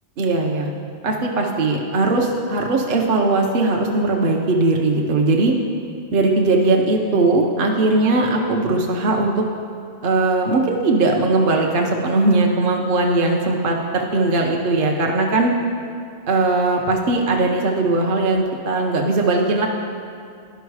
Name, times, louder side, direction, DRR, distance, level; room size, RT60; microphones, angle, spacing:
voice 1, 0.2-0.7 1.0-5.6 6.1-9.4 10.0-15.5 16.3-19.7, right 2 dB, 55° right, 1 dB, 0.8 m, -19 dB
11.5 x 5.5 x 4.7 m, 2.3 s
omnidirectional pair, 1.1 m